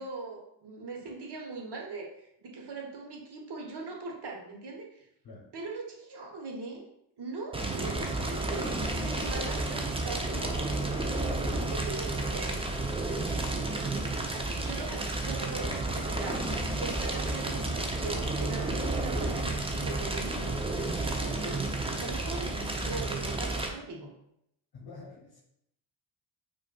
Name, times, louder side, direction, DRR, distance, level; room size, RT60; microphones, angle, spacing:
voice 1, 0.0-5.1 5.5-6.8 7.2-10.7 11.5-12.6 14.3-16.5 16.8-20.6 21.0-24.1, right 3 dB, 55° right, 0 dB, 1.1 m, -40 dB
Fire, 7.5-23.7, right 2 dB, 10° right, 0.5 m, -31 dB
voice 2, 13.5-14.3 16.8-17.1 24.7-25.4, left 3 dB, 50° left, -1 dB, 0.9 m, -46 dB
4.6 x 2.5 x 2.3 m, 0.76 s
supercardioid pair, 50°, 49 cm